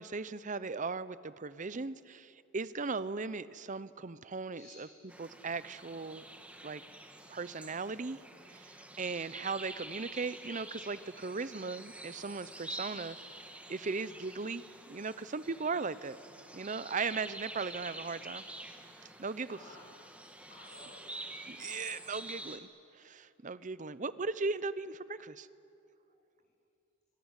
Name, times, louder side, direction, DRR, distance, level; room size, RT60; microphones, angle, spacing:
voice 1, 0.0-4.9 5.2-6.2 6.6-6.8 7.3-8.2 8.5-16.2 16.5-18.4 19.2-19.6 21.5-22.7 22.9-25.5, right 4 dB, 40° right, 16 dB, 0.7 m, -38 dB
voice 2, 4.5-5.0 9.1-9.2 11.3-11.5 19.5-21.3 21.6-21.7 22.0-22.1, left 2 dB, 40° left, -7 dB, 6.7 m, -56 dB
sound 1, 5.1-22.6, right 1 dB, 5° right, 1.7 m, -48 dB
26.5 x 24.5 x 8.2 m, 2.7 s
head